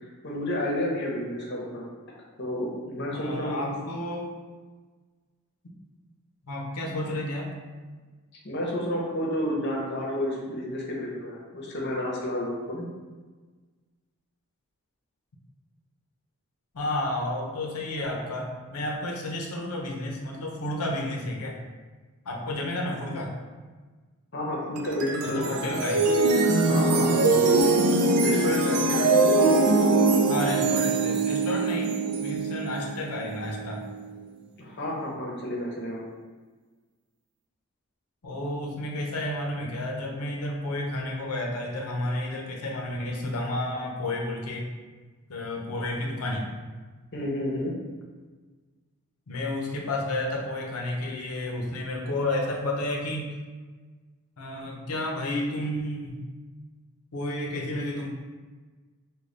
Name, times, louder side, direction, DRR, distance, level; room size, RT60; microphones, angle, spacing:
voice 1, 0.2-1.8 2.4-3.7 8.4-12.8 24.3-25.8 26.6-27.6 28.2-29.1 34.6-36.0 47.1-47.7, left 1 dB, 50° left, -2 dB, 0.7 m, -30 dB
voice 2, 3.1-4.3 6.5-7.5 16.7-21.6 22.3-23.3 25.2-26.0 30.3-33.8 38.2-44.7 45.3-46.5 49.3-53.4 54.4-56.2 57.1-58.1, left 1 dB, 85° left, -1 dB, 0.6 m, -31 dB
sound 1, 24.8-34.0, right 3 dB, 85° right, 0.4 m, -23 dB
3.8 x 2.2 x 3.2 m, 1.4 s
head